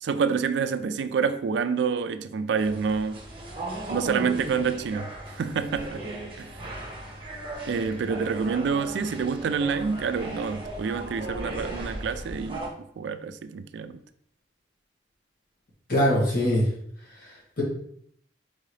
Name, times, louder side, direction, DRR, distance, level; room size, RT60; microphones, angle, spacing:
voice 1, 0.0-3.2 3.9-5.1 5.4-6.1 6.4-6.6 7.7-12.7 13.0-14.0, right 5 dB, 65° right, 0.3 m, -27 dB
sound 1, 2.6-12.7, right 1 dB, 30° right, 0.9 m, -37 dB
voice 2, 15.9-16.7 17.2-17.6, equal, 50° left, 1.5 m, -23 dB
3.8 x 3.7 x 3.1 m
head